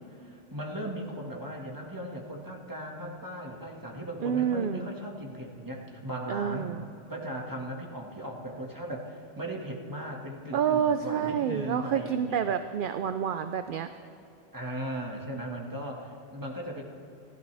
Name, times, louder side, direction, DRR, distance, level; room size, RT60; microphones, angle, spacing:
voice 1, 0.1-6.7 7.1-12.4 14.5-16.8, right 1 dB, 15° right, -1 dB, 1.8 m, -38 dB
voice 2, 4.2-4.9 6.3-6.8 10.5-13.9, right 8 dB, 60° right, 9 dB, 0.6 m, -28 dB
29.5 x 12.0 x 3.4 m, 2.8 s
omnidirectional pair, 1.2 m